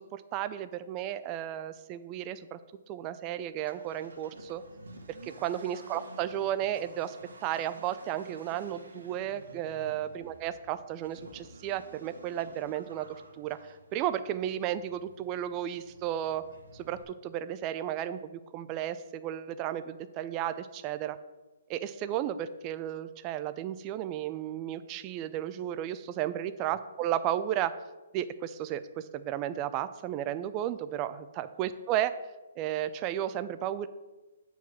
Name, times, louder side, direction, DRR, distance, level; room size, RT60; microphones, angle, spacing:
voice 1, 0.0-2.6 2.9-4.6 5.2-7.2 7.4-13.1 13.4-13.6 13.9-16.4 16.7-21.1 21.7-27.8 28.1-32.1 32.6-33.9, right 11 dB, 25° right, 12 dB, 0.4 m, -33 dB
Accelerating revving vroom, 3.5-17.0, right 2 dB, 90° right, 1.7 m, -52 dB
7.9 x 4.7 x 6.0 m, 1.1 s
hypercardioid pair, 150°, 0 cm